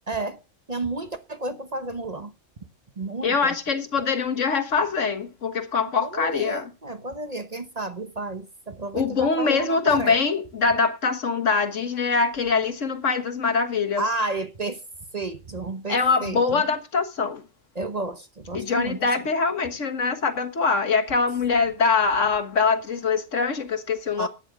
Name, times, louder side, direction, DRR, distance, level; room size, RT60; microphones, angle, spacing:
voice 1, 0.1-0.4 0.7-2.3 3.0-3.6 6.0-10.2 14.0-14.8 15.1-16.6 17.7-19.3 24.2-24.3, right 2 dB, 35° right, 1.0 m, -31 dB
voice 2, 3.2-6.7 8.9-14.0 15.9-17.4 18.5-24.3, left 5 dB, 75° left, 1.8 m, -23 dB
12.5 x 9.3 x 4.9 m
omnidirectional pair, 1.3 m